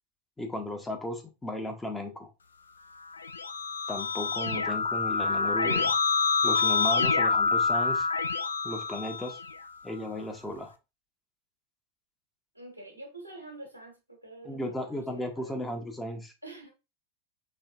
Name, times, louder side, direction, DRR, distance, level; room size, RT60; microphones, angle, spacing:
voice 1, 0.4-2.3 3.9-5.9 6.4-8.1 8.6-9.4 9.8-10.7 14.4-16.3, left 1 dB, 10° left, 0.7 m, -35 dB
Keyboard (musical), 3.1-9.7, left 4 dB, 75° left, 0.3 m, -27 dB
voice 2, 12.5-15.5 16.4-16.7, right 2 dB, 90° right, 1.2 m, -46 dB
4.4 x 3.1 x 2.4 m
figure-of-eight pair, 90°, 0 cm